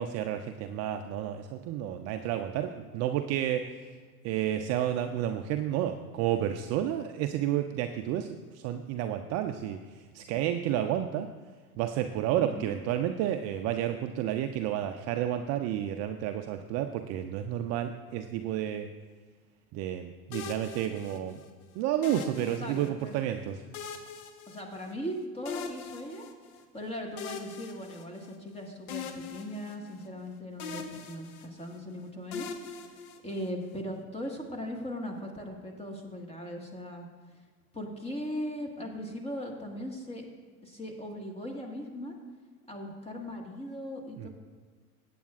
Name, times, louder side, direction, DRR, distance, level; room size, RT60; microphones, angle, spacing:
voice 1, 0.0-3.9 4.2-9.8 10.1-11.3 11.8-18.9 19.7-21.4 21.7-23.6 44.2-44.3, right 11 dB, 35° right, 6 dB, 0.5 m, -31 dB
voice 2, 12.4-12.7 21.1-21.2 22.3-23.2 24.5-26.3 26.7-32.5 32.8-37.1 37.7-40.2 40.6-42.2 42.7-44.3, equal, 15° left, 2 dB, 1.7 m, -39 dB
sound 1, 20.3-21.5 22.0-23.2 23.7-25.1 25.5-26.6 27.2-28.5 28.9-30.3 30.6-31.8 32.3-33.7, left 6 dB, 70° left, 1.1 m, -42 dB
17.0 x 8.5 x 2.4 m, 1.5 s
hypercardioid pair, 95°, 45 cm